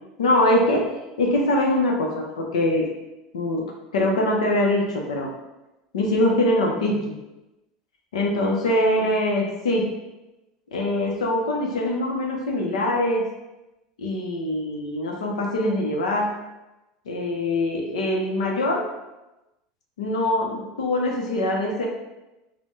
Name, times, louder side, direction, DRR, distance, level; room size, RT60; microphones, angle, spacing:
voice 1, 0.2-0.9 1.2-2.9 3.3-3.6 3.9-5.3 5.9-7.1 8.1-9.9 10.7-13.2 14.0-16.3 17.1-18.9 20.0-21.9, left 1 dB, 90° left, 0 dB, 0.7 m, -23 dB
4.1 x 2.2 x 3.1 m, 1.0 s
hypercardioid pair, 95°, 3 cm